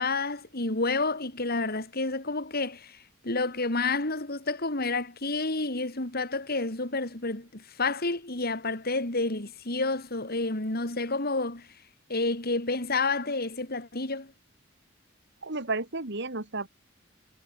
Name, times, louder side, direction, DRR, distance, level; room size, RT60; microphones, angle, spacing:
voice 1, 0.0-11.7 12.1-14.3, left 3 dB, 50° left, 4.0 m, -30 dB
voice 2, 15.4-16.7, right 3 dB, 60° right, 3.3 m, -32 dB
head